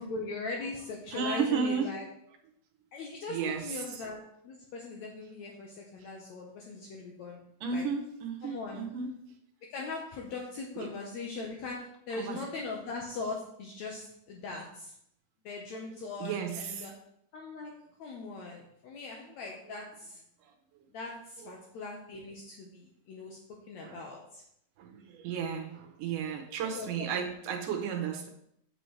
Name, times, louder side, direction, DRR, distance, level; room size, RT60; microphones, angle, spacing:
voice 1, 0.0-2.1 2.9-7.4 7.7-7.8 8.4-8.9 9.7-14.9 15.5-16.9 17.3-17.7 18.0-20.2 20.9-23.4 23.7-24.4 26.7-26.9 27.1-27.3, left 3 dB, 70° left, -1 dB, 1.7 m, -40 dB
voice 2, 1.1-1.9 3.3-3.8 7.6-9.1 10.8-10.9 12.1-12.4 16.2-16.9 19.7-19.8 21.4-21.5 23.8-24.0 24.8-28.3, right 6 dB, 70° right, 2 dB, 2.3 m, -33 dB
7.7 x 6.2 x 3.2 m, 0.72 s
omnidirectional pair, 4.1 m